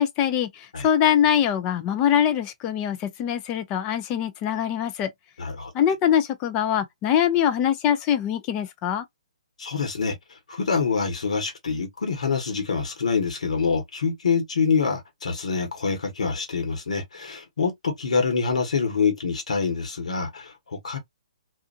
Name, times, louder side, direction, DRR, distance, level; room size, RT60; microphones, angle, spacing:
voice 1, 0.0-5.1 5.7-9.0, left 9 dB, 25° left, 0.5 m, -23 dB
voice 2, 5.4-5.7 9.6-10.2 10.5-21.0, left 5 dB, 75° left, 1.2 m, -26 dB
2.7 x 2.4 x 2.4 m
hypercardioid pair, 145°, 4 cm